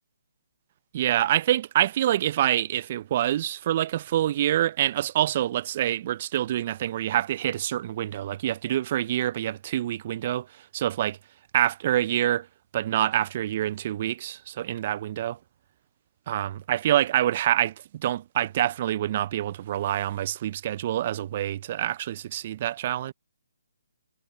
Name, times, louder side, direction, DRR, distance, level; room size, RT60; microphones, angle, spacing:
voice 1, 0.9-11.2 11.5-12.5 12.7-15.4 16.3-23.1, right 12 dB, 40° right, 0.5 m, -26 dB
figure-of-eight pair, 145°, 0 cm